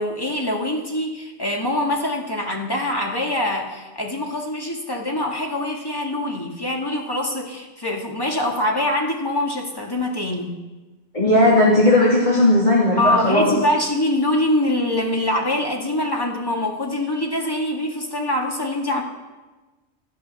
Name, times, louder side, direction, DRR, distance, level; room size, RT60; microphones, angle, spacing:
voice 1, 0.0-10.5 13.0-19.0, left 1 dB, 20° left, 0 dB, 2.0 m, -24 dB
voice 2, 11.1-13.5, left 1 dB, 40° left, -6 dB, 2.8 m, -16 dB
13.0 x 12.5 x 6.9 m, 1.2 s
omnidirectional pair, 1.1 m